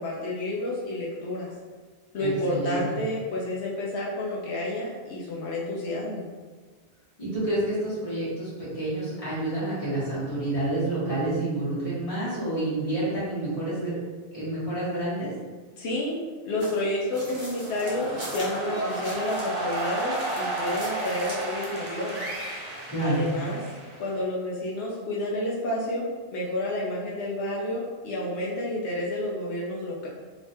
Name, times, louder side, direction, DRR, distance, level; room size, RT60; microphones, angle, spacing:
voice 1, 0.0-1.5 2.1-6.3 15.8-16.2 16.4-22.2 23.0-23.6 24.0-26.0 26.3-30.1, left 1 dB, 85° left, -4 dB, 1.0 m, -30 dB
voice 2, 2.2-2.8 7.2-14.0 14.3-15.3 22.9-23.3, right 1 dB, 30° left, -10 dB, 1.6 m, -29 dB
sound 1, 16.6-19.5 19.8-21.5, equal, 25° right, 1.0 m, -42 dB
sound 2, 17.3-24.2, right 2 dB, 65° right, 1.1 m, -33 dB
3.3 x 3.0 x 2.7 m, 1.4 s
omnidirectional pair, 1.1 m